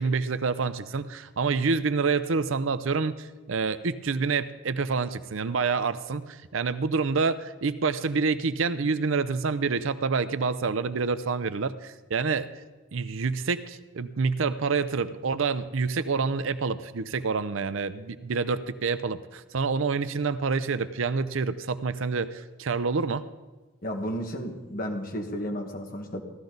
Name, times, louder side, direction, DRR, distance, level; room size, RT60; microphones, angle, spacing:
voice 1, 0.0-12.5 12.9-23.3, right 4 dB, 70° right, 13 dB, 0.6 m, -27 dB
voice 2, 23.8-26.2, equal, 45° left, 3 dB, 1.7 m, -33 dB
16.0 x 13.0 x 4.0 m, 1.2 s
head